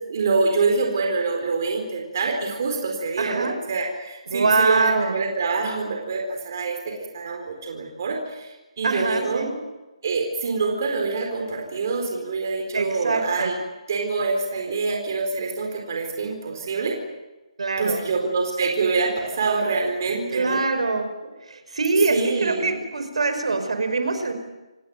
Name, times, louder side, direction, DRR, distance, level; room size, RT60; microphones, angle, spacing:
voice 1, 0.1-9.5 10.0-13.6 13.9-17.0 17.8-20.6 22.1-22.8, right 4 dB, 30° right, 2 dB, 4.4 m, -25 dB
voice 2, 3.2-3.5 4.3-5.1 8.8-9.5 12.7-13.5 17.6-18.0 20.3-21.1 21.5-24.3, right 3 dB, 65° right, 8 dB, 5.0 m, -23 dB
28.5 x 19.0 x 9.2 m, 1.1 s
hypercardioid pair, 180°, 4 cm